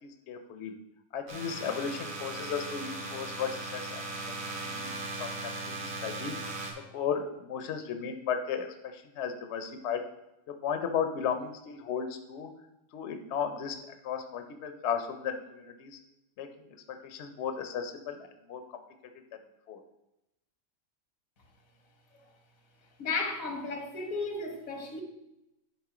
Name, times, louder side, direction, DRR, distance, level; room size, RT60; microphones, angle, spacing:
voice 1, 0.0-0.7 1.1-4.9 5.2-6.3 6.9-10.1 10.5-12.5 12.9-13.8 14.0-16.0 16.4-18.2 18.5-18.8 19.7-19.8, left 7 dB, 60° left, 1.0 m, -35 dB
sound 1, 1.3-6.7, right 2 dB, 80° right, 1.7 m, -38 dB
voice 2, 23.0-25.0, left 3 dB, 90° left, 1.6 m, -34 dB
10.5 x 3.6 x 4.9 m
omnidirectional pair, 1.4 m